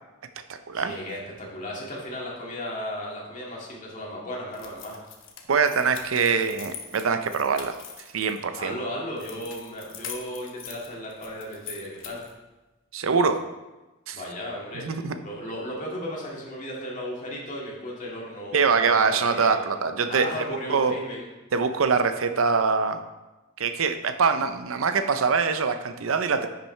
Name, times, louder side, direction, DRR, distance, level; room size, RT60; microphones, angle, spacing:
voice 1, 0.7-5.0 8.6-12.2 14.1-14.9 15.2-19.6 20.1-21.3, equal, 40° left, -3 dB, 2.0 m, -35 dB
sound 1, 4.5-8.6 9.2-12.4, left 7 dB, 65° left, 1.0 m, -43 dB
voice 2, 5.5-7.8 8.1-8.8 12.9-13.4 14.1-14.2 14.7-15.2 18.5-20.4 20.7-21.0 21.5-23.0 23.6-26.5, right 5 dB, 75° right, 9 dB, 0.6 m, -23 dB
10.0 x 5.9 x 3.2 m, 1.1 s
head